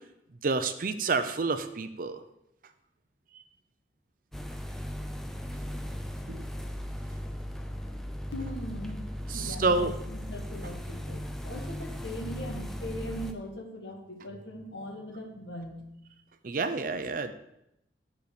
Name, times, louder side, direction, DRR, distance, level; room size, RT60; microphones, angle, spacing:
voice 1, 0.4-2.2 3.3-3.4 6.3-6.6 9.3-9.9 16.4-17.3, right 3 dB, 50° right, 10 dB, 0.6 m, -29 dB
sound 1, 4.3-13.3, equal, ahead, 0.5 m, -37 dB
voice 2, 8.3-15.9, equal, 85° left, 3 dB, 1.5 m, -40 dB
6.4 x 5.3 x 6.9 m, 0.81 s
head